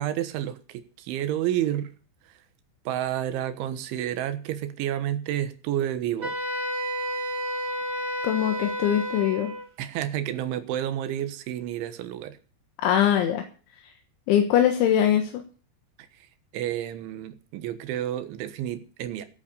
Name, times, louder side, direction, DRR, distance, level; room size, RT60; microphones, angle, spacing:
voice 1, 0.0-1.9 2.9-6.4 9.8-12.4 16.2-16.3 16.5-19.3, right 11 dB, 85° right, 3.6 m, -30 dB
Wind instrument woodwind instrument, 6.2-9.7, equal, 25° right, 4.2 m, -31 dB
voice 2, 8.2-9.5 12.8-13.5 14.3-15.4, left 10 dB, 80° left, 3.7 m, -22 dB
16.0 x 8.8 x 6.9 m
omnidirectional pair, 5.4 m